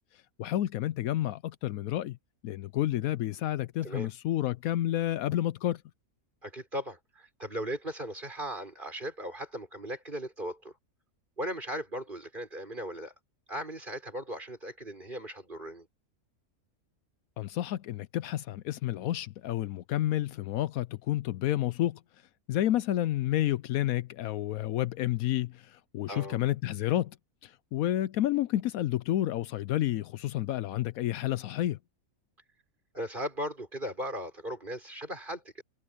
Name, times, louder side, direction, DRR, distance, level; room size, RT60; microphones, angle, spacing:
voice 1, 0.4-2.2 2.4-5.8 17.4-22.0 22.5-27.1 27.4-31.8, left 13 dB, 75° left, 1.0 m, -30 dB
voice 2, 6.4-10.7 11.4-13.1 13.5-15.9 26.1-26.4 32.9-35.6, equal, 35° right, 6.8 m, -37 dB
omnidirectional pair, 1.5 m